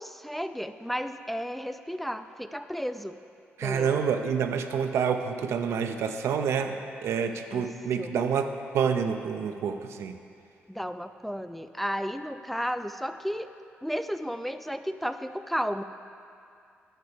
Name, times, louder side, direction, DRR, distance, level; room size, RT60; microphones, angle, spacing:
voice 1, 0.0-3.2 3.6-4.0 7.5-7.7 8.0-8.1 10.7-13.5 13.8-15.8, equal, 5° left, 9 dB, 0.3 m, -33 dB
voice 2, 3.6-6.8 7.0-8.5 8.7-10.2, right 7 dB, 75° right, 7 dB, 0.5 m, -28 dB
9.0 x 5.7 x 5.0 m, 2.4 s
cardioid pair, 70°, 5 cm